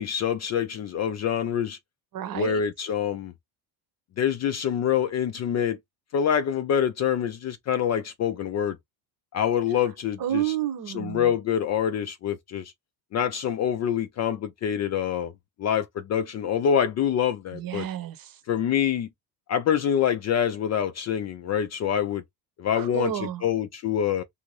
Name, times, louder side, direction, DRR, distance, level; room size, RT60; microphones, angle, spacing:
voice 1, 0.0-1.8 2.3-3.3 4.2-5.8 6.1-8.8 9.3-10.5 10.9-12.7 13.1-15.3 15.6-17.8 18.5-19.1 19.5-22.2 22.6-23.1 23.4-24.2, left 8 dB, 35° left, 0.4 m, -26 dB
voice 2, 2.1-2.6 10.2-11.3 17.5-18.4 22.7-23.5, right 11 dB, 45° right, 0.9 m, -30 dB
2.7 x 2.5 x 3.0 m
supercardioid pair, 90°, 49 cm